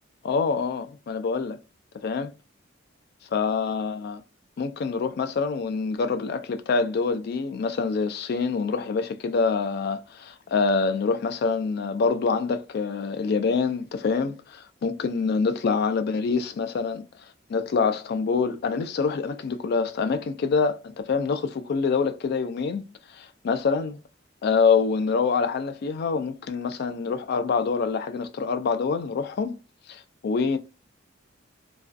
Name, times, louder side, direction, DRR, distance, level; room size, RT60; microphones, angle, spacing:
voice 1, 0.2-1.6 2.0-2.3 3.3-4.2 4.6-24.0 24.4-29.6 29.9-30.6, left 5 dB, 50° left, 0.3 m, -26 dB
2.3 x 2.3 x 2.4 m
head